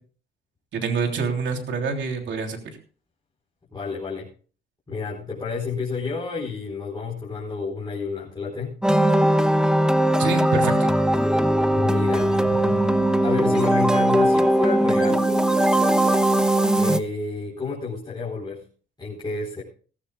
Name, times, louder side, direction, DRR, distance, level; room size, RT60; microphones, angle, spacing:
voice 1, 0.7-2.6 10.2-10.9, right 4 dB, 70° right, 3 dB, 3.3 m, -26 dB
voice 2, 3.7-4.3 4.9-8.7 11.7-12.8 13.2-15.3 16.7-18.6 19.0-19.6, left 4 dB, 20° left, -6 dB, 4.5 m, -30 dB
sound 1, 8.8-17.0, right 1 dB, 5° right, 0.8 m, -19 dB
17.5 x 15.5 x 2.4 m, 0.40 s
cardioid pair, 90°, 20 cm